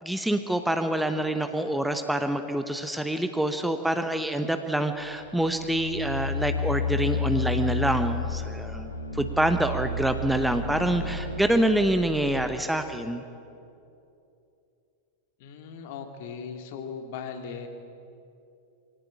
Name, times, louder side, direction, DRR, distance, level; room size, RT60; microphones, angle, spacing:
voice 1, 0.0-13.2, right 1 dB, 5° right, 8 dB, 1.0 m, -26 dB
sound 1, 5.0-12.5, left 3 dB, 85° left, 2.0 m, -31 dB
voice 2, 15.4-17.7, left 6 dB, 50° left, 5 dB, 2.3 m, -38 dB
23.0 x 17.5 x 8.6 m, 2.7 s
figure-of-eight pair, 90°, 0 cm